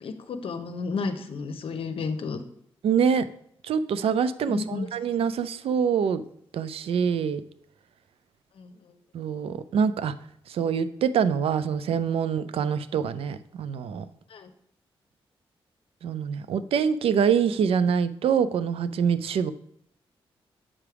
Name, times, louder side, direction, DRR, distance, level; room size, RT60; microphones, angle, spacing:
voice 1, 0.0-2.4 4.5-4.9 8.6-8.7 14.3-14.5, left 4 dB, 65° left, 8 dB, 0.7 m, -32 dB
voice 2, 2.8-3.3 3.6-6.2 6.5-7.4 9.1-10.1 10.5-14.0 16.0-19.5, right 7 dB, 75° right, 13 dB, 0.4 m, -25 dB
7.1 x 3.4 x 4.7 m, 0.69 s
cardioid pair, 75°, 10 cm